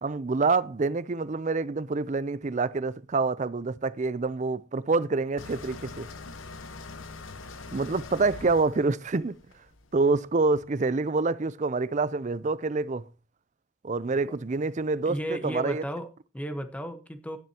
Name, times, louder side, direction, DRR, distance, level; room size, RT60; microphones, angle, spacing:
voice 1, 0.0-6.1 7.7-9.4 9.9-13.1 13.8-15.8, right 3 dB, 40° right, 0.5 m, -27 dB
sound 1, 5.4-10.3, left 3 dB, 85° left, 1.1 m, -43 dB
voice 2, 15.0-17.4, equal, 5° left, 1.1 m, -34 dB
12.5 x 10.5 x 2.9 m
head